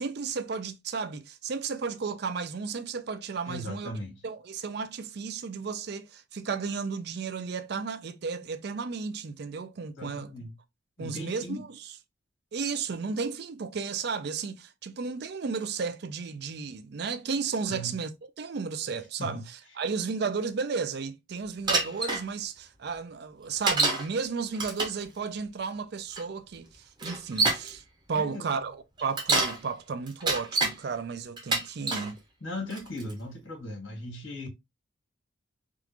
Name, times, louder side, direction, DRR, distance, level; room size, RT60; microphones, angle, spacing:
voice 1, 0.0-3.9 4.2-10.3 11.0-11.9 12.5-18.1 18.4-26.7 27.0-27.8 28.1-32.2, right 5 dB, 55° right, 0.4 m, -33 dB
voice 2, 3.5-4.2 10.0-10.5 11.0-11.6 17.7-18.0 19.2-19.4 28.1-28.6 32.4-34.5, left 1 dB, 80° left, 1.7 m, -38 dB
Bicycle, 21.7-22.2 23.7-24.1 24.5-25.0 26.1-26.2 27.0-27.7 29.0-29.6 30.1-30.7 31.4-32.1 32.7-33.1, right 3 dB, 20° right, 0.8 m, -26 dB
3.6 x 2.4 x 2.8 m
head